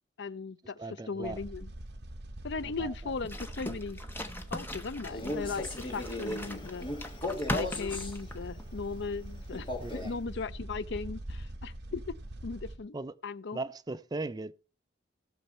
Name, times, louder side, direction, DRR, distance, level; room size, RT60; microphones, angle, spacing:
voice 1, 0.2-0.8 1.1-1.7 2.4-4.0 4.5-6.9 7.5-12.1 12.4-13.0 13.2-13.6, left 4 dB, 65° left, 0.5 m, -37 dB
voice 2, 0.8-1.4 2.6-3.1 9.8-10.1 12.9-13.1 13.5-14.5, right 2 dB, 20° right, 0.4 m, -38 dB
sound 1, 1.2-12.8, right 1 dB, 60° right, 1.4 m, -44 dB
sound 2, 3.2-8.7, left 1 dB, 10° left, 1.1 m, -40 dB
Male speech man speaking, 5.0-8.2 9.5-10.2, left 1 dB, 25° left, 2.4 m, -37 dB
17.0 x 6.5 x 4.3 m
head